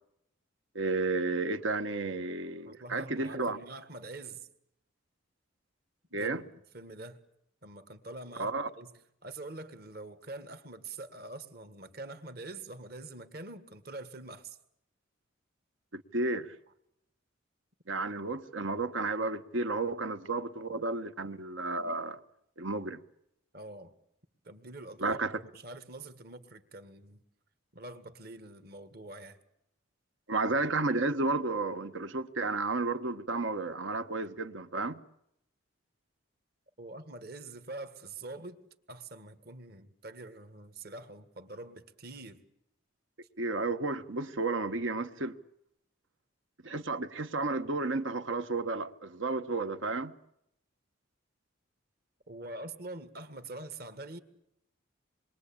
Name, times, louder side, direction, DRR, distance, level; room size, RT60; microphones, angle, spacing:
voice 1, 0.7-3.6 6.1-6.4 8.4-8.7 15.9-16.5 17.9-22.2 22.6-23.0 25.0-25.4 30.3-35.0 43.4-45.4 46.6-50.1, right 3 dB, 70° right, 1.3 m, -32 dB
voice 2, 2.7-4.5 6.1-6.4 6.7-7.2 7.6-8.9 9.2-14.6 23.5-23.9 24.4-25.2 25.5-27.2 27.7-29.4 36.8-38.6 38.9-42.4 52.3-54.2, right 2 dB, 50° right, 1.8 m, -45 dB
27.5 x 22.5 x 8.7 m
head